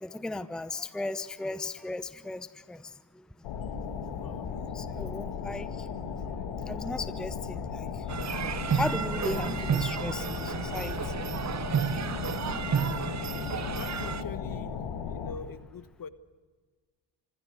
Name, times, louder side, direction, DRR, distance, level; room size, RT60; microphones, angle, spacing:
voice 1, 0.0-2.9 4.7-5.9 6.7-7.9 8.7-11.1, left 2 dB, ahead, 13 dB, 0.8 m, -36 dB
sound 1, 3.4-15.3, left 6 dB, 75° left, 2.6 m, -36 dB
voice 2, 4.2-4.5 12.8-13.2 13.7-14.8 15.1-16.1, left 6 dB, 45° left, 13 dB, 1.2 m, -44 dB
sound 2, 8.1-14.2, right 7 dB, 35° right, 0.9 m, -31 dB
25.5 x 15.5 x 7.9 m, 1.4 s
supercardioid pair, 60°, 50 cm